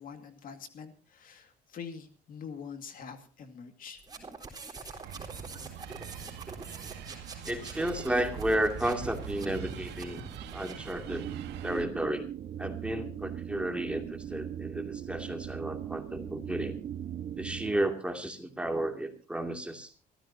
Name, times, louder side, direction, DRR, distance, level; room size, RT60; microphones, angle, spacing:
voice 1, 0.0-4.0, left 6 dB, 55° left, 8 dB, 2.2 m, -45 dB
sound 1, 4.0-11.0, right 4 dB, 25° right, 4.0 m, -45 dB
sound 2, 5.0-11.8, right 8 dB, 85° right, 1.9 m, -43 dB
voice 2, 7.5-10.2 10.5-11.3 11.6-12.3 12.6-16.8 17.4-19.9, right 1 dB, 5° right, 4 dB, 2.6 m, -32 dB
sound 3, 11.1-17.7, right 10 dB, 55° right, 1.3 m, -39 dB
24.5 x 14.0 x 2.8 m, 0.35 s
cardioid pair, 110°, 17 cm